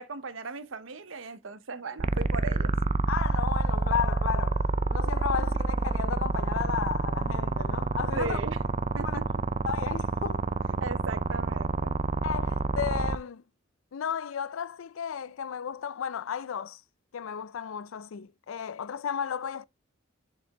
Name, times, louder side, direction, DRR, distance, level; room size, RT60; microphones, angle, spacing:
voice 1, 0.0-2.7 5.3-5.4 8.1-8.6 8.9-9.3 10.7-11.9, right 3 dB, 75° right, 0.9 m, -37 dB
sound 1, 2.0-13.2, right 3 dB, 30° right, 0.4 m, -28 dB
voice 2, 3.1-4.6 4.9-8.4 9.0-9.2 9.7-10.5 12.2-13.4 13.9-16.8 17.1-19.7, left 8 dB, 80° left, 0.4 m, -33 dB
7.4 x 5.1 x 3.5 m
head